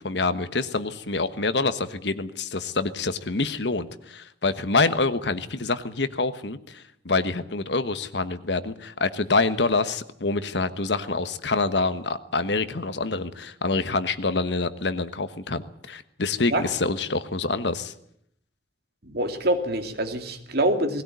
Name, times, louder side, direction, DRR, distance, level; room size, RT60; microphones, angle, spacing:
voice 1, 0.0-17.9, left 3 dB, 70° left, 12 dB, 1.3 m, -26 dB
voice 2, 19.0-21.0, right 1 dB, 60° right, 6 dB, 2.5 m, -25 dB
19.5 x 17.0 x 9.4 m, 0.72 s
head